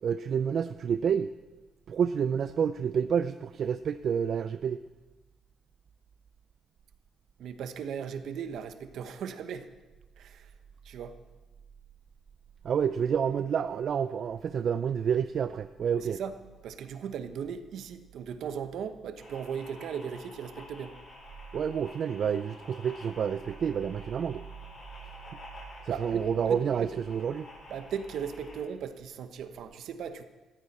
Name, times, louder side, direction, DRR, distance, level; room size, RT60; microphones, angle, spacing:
voice 1, 0.0-1.3 1.9-4.8 12.6-16.2 21.5-24.4 25.8-27.5, right 7 dB, 60° right, 12 dB, 0.5 m, -29 dB
voice 2, 7.4-9.7 10.2-10.5 10.8-11.2 16.0-16.3 16.6-21.0 25.9-26.9 27.7-30.2, right 7 dB, 75° right, 9 dB, 1.1 m, -37 dB
sound 1, 19.2-28.6, left 2 dB, 45° left, 6.8 m, -50 dB
18.0 x 14.5 x 4.3 m, 1.2 s
cardioid pair, 90°, 0 cm